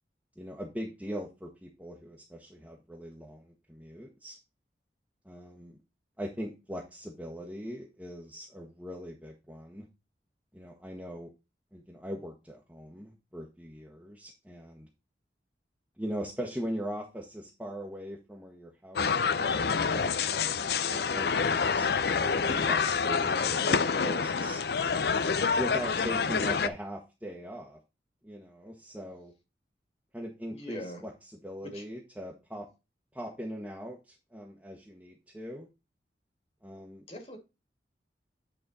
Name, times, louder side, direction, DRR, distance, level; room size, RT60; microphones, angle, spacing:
voice 1, 0.4-4.4 5.2-5.8 6.2-9.9 10.5-11.3 11.7-14.9 16.0-24.6 25.5-27.8 28.2-29.3 30.1-31.1 31.4-32.7 33.1-35.7 36.6-37.0, equal, 10° right, 1.2 m, -40 dB
sound 1, 19.0-26.7, left 5 dB, 60° left, 0.5 m, -27 dB
voice 2, 22.3-23.8 24.4-24.5 26.0-26.3 30.5-31.0 31.6-31.9 37.1-37.4, left 1 dB, 35° left, 2.3 m, -42 dB
9.0 x 4.3 x 4.1 m
head